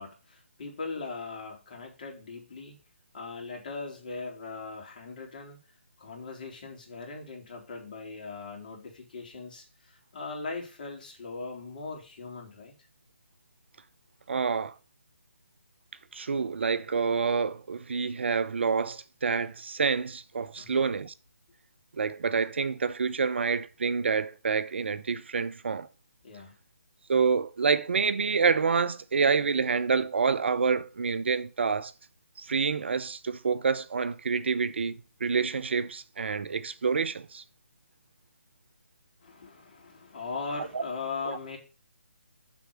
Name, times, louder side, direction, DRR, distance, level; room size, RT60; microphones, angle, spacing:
voice 1, 0.0-2.7 3.1-5.6 6.0-12.7 20.6-21.0 26.2-26.5 39.2-41.6, left 4 dB, 40° left, 3.8 m, -39 dB
voice 2, 14.3-14.7 16.1-21.1 22.0-25.9 27.1-31.9 32.4-34.9 35.2-37.4 40.7-40.8, right 5 dB, 60° right, 0.8 m, -27 dB
7.1 x 6.1 x 7.0 m
figure-of-eight pair, 155°, 7 cm